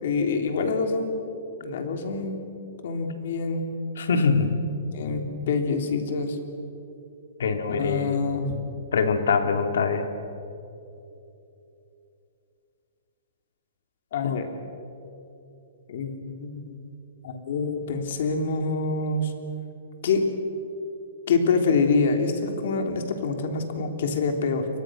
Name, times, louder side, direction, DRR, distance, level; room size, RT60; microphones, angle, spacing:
voice 1, 0.0-1.2 1.6-2.4 2.8-3.7 4.9-6.4 7.8-8.5 14.1-14.5 15.9-16.8 17.2-19.3 20.0-20.3 21.3-24.7, left 4 dB, 55° left, 5 dB, 3.2 m, -26 dB
voice 2, 4.0-4.5 7.4-8.1 8.9-10.0 14.2-14.4, left 5 dB, 75° left, 6 dB, 2.8 m, -23 dB
29.5 x 23.5 x 6.4 m, 2.8 s
hypercardioid pair, 170°, 0 cm